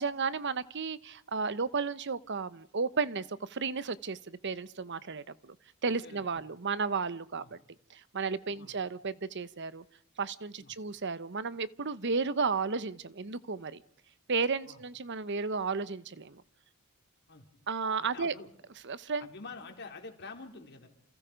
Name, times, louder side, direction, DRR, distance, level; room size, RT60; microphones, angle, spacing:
voice 1, 0.0-5.6 5.8-7.6 7.9-9.8 10.2-13.8 14.3-16.4 17.7-18.3 18.8-19.3, right 4 dB, 55° right, 16 dB, 1.0 m, -33 dB
voice 2, 6.0-6.5 7.3-7.5 8.5-8.7 10.6-10.7 14.7-14.8 17.3-17.5 18.0-18.5 19.2-20.9, left 3 dB, 55° left, 3 dB, 4.0 m, -47 dB
29.0 x 27.5 x 5.2 m, 0.63 s
head